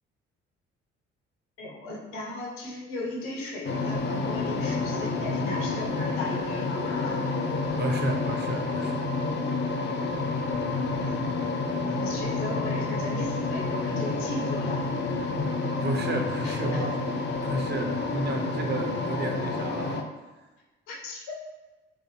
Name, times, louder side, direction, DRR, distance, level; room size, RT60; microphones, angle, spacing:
voice 1, 1.6-7.2 10.9-11.3 11.7-14.8 16.4-16.9 20.9-21.4, left 2 dB, 75° left, -2 dB, 0.9 m, -37 dB
sound 1, 3.6-20.0, left 3 dB, 35° left, 0.5 m, -29 dB
voice 2, 7.8-9.1 15.8-16.9 17.4-20.1, right 2 dB, 30° right, 3 dB, 0.6 m, -32 dB
3.7 x 2.6 x 3.0 m, 1.2 s
figure-of-eight pair, 45°, 32 cm